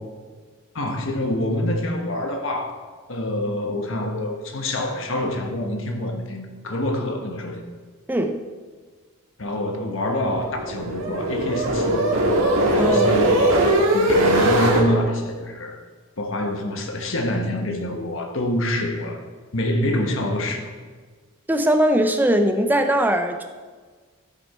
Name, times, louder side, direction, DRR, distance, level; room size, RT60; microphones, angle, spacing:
voice 1, 0.7-2.7 3.1-7.6 9.4-12.1 12.4-13.6 13.9-15.8 16.2-19.2 19.5-20.7, left 1 dB, 65° left, 3 dB, 1.3 m, -26 dB
voice 2, 8.1-8.4 12.8-13.2 21.5-23.4, right 1 dB, 10° right, 5 dB, 0.6 m, -20 dB
sound 1, 10.1-14.8, right 1 dB, 80° right, 1.9 m, -20 dB
13.0 x 6.4 x 4.3 m, 1.5 s
head